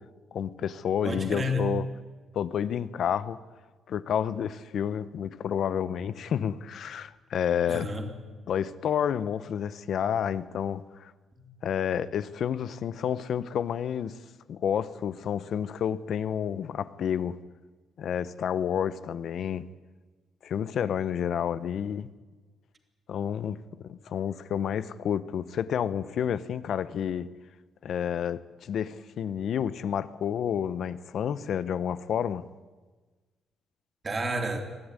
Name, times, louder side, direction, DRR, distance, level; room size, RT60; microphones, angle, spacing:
voice 1, 0.3-1.9 2.3-3.4 3.9-7.9 8.5-11.1 11.6-14.1 14.5-17.3 18.0-19.7 20.4-22.1 23.1-23.6 23.9-27.3 27.8-32.4, left 8 dB, 65° left, 0.9 m, -30 dB
voice 2, 1.0-1.8 7.7-8.2 11.3-11.5 34.0-34.6, equal, 30° right, 3.3 m, -30 dB
22.0 x 14.0 x 9.7 m
cardioid pair, 90°, 0 cm